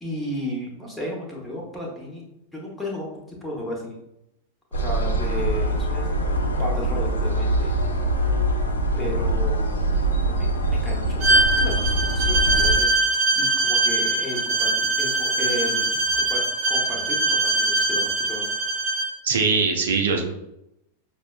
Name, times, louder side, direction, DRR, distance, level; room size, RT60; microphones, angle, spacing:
voice 1, 0.0-2.2 2.5-4.0 4.7-7.7 9.0-9.8 10.2-12.9 13.3-15.9 16.1-18.5, left 1 dB, 5° left, -3 dB, 1.0 m, -34 dB
sound 1, 4.7-12.7, right 1 dB, 70° left, 0.5 m, -23 dB
Bowed string instrument, 11.2-19.1, right 2 dB, 35° right, 0.9 m, -22 dB
voice 2, 19.2-20.2, right 4 dB, 65° right, 3 dB, 0.5 m, -21 dB
5.9 x 2.1 x 2.3 m, 0.84 s
figure-of-eight pair, 90°, 0 cm